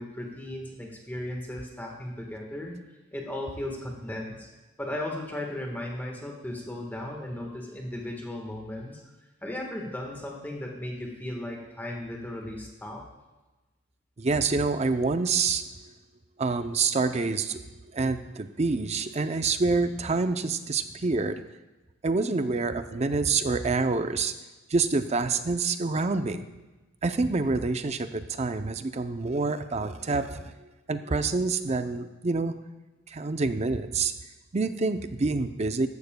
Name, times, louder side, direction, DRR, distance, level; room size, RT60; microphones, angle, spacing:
voice 1, 0.0-2.7 3.1-4.5 4.8-9.0 9.4-13.0, left 1 dB, 10° left, 0 dB, 1.4 m, -36 dB
voice 2, 14.2-15.7 16.4-21.4 22.0-24.3 24.7-26.5 27.0-30.5 30.9-32.5 33.1-34.1 34.5-35.9, right 3 dB, 30° right, 9 dB, 0.5 m, -27 dB
15.0 x 12.0 x 2.2 m, 1.1 s
head